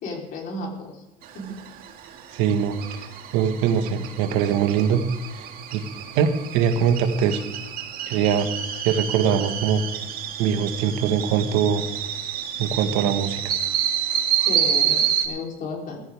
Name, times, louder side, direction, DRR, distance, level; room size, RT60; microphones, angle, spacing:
voice 1, 0.0-1.0 1.3-1.5 14.4-16.0, left 3 dB, 45° left, 0 dB, 3.9 m, -33 dB
sound 1, 1.2-15.3, right 9 dB, 50° right, 1.9 m, -28 dB
voice 2, 2.3-2.8 3.3-5.0 5.3-5.8 6.2-7.4 8.1-8.5 8.8-9.8 10.4-11.8 12.6-13.5, right 8 dB, 70° right, 7 dB, 1.6 m, -22 dB
15.5 x 14.5 x 3.6 m, 1.1 s
cardioid pair, 135°, 20 cm